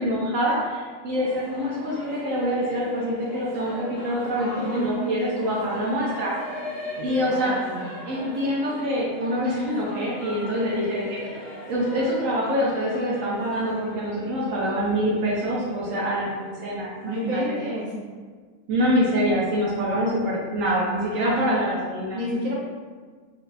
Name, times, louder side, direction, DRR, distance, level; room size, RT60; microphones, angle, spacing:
voice 1, 0.0-6.3 7.0-7.6 8.1-11.2 11.7-16.9 17.2-17.4 18.7-22.2, equal, 70° right, -6 dB, 1.0 m, -25 dB
Singing / Musical instrument, 1.1-17.4, left 1 dB, 80° left, 0.4 m, -39 dB
voice 2, 4.4-5.2 7.0-7.9 17.0-18.1 21.1-21.5 22.1-22.6, equal, 55° right, -5 dB, 0.5 m, -30 dB
3.8 x 2.7 x 2.3 m, 1.5 s
omnidirectional pair, 1.4 m